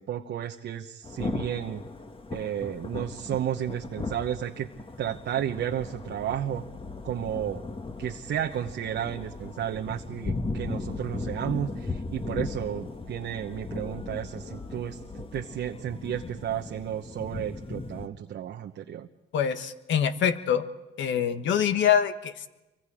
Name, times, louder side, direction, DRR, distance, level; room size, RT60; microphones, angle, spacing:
voice 1, 0.0-1.8 2.3-4.7 5.0-6.6 7.0-7.6 8.0-19.1, right 10 dB, 65° right, 4 dB, 1.0 m, -32 dB
Thunder / Rain, 1.0-18.1, left 3 dB, 25° left, 1.8 m, -37 dB
voice 2, 19.3-20.6 21.0-22.5, left 8 dB, 70° left, 9 dB, 1.5 m, -25 dB
28.0 x 24.5 x 5.0 m, 1.0 s
supercardioid pair, 70°, 20 cm